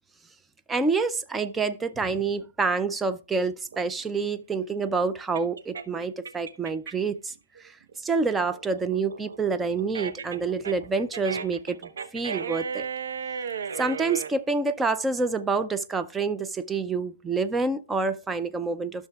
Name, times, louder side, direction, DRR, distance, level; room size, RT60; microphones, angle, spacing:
voice 1, 0.7-7.3 8.0-11.8 12.1-12.9 13.8-19.1, right 4 dB, 5° right, 0.4 m, -27 dB
sound 1, 3.7-7.2 7.6-14.3, right 6 dB, 65° right, 0.9 m, -35 dB
12.5 x 6.5 x 2.3 m
hypercardioid pair, 170°, 0 cm